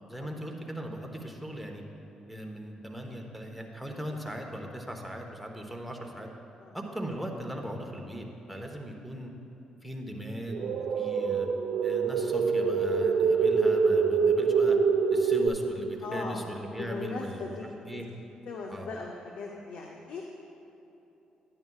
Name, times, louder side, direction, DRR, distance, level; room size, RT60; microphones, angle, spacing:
voice 1, 0.1-1.8 2.3-6.3 6.7-9.3 9.8-11.5 11.8-14.8 15.1-17.5 17.9-18.0 18.7-18.9, equal, ahead, 1 dB, 1.0 m, -39 dB
sound 1, 10.5-15.5, right 5 dB, 70° right, 1.0 m, -25 dB
voice 2, 16.0-16.5 16.8-17.6 17.9-18.1 18.5-20.2, left 4 dB, 75° left, 0 dB, 0.6 m, -39 dB
10.5 x 9.6 x 2.3 m, 3.0 s
cardioid pair, 80°, 2 cm